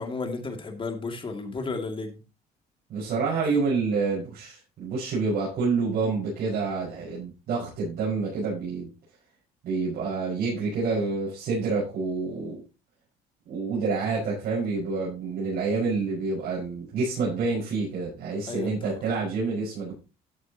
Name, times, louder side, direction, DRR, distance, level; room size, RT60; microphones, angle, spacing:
voice 1, 0.0-2.2 18.5-19.0, left 3 dB, 30° left, 2.5 m, -33 dB
voice 2, 2.9-8.9 9.6-12.6 13.5-19.9, right 4 dB, 65° right, 5.5 m, -28 dB
13.5 x 8.0 x 2.9 m
cardioid pair, 110°, 17 cm